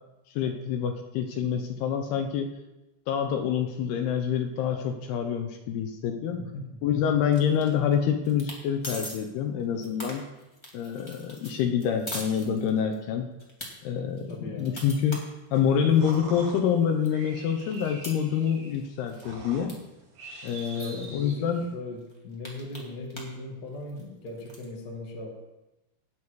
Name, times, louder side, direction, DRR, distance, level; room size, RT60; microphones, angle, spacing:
voice 1, 0.3-2.5 3.1-6.4 6.8-10.2 10.7-13.3 13.8-14.3 14.6-15.2 15.5-19.8 20.4-21.7, left 8 dB, 75° left, 5 dB, 2.6 m, -26 dB
sound 1, 7.3-7.9 8.2-8.6 8.8-9.2 9.6-13.0 13.4-13.7 14.2-16.2 16.7-16.8 17.0-18.8 19.1-19.3 19.7-19.8 20.0-20.1 20.5-21.1 21.6-21.7 22.0-23.4 23.7-24.6, left 1 dB, 15° left, 0.9 m, -41 dB
voice 2, 14.3-14.8 20.8-25.3, left 1 dB, 45° left, 0 dB, 1.2 m, -39 dB
sound 2, 15.5-21.7, right 2 dB, 85° right, 6.3 m, -45 dB
18.0 x 7.0 x 4.7 m, 0.99 s
omnidirectional pair, 5.1 m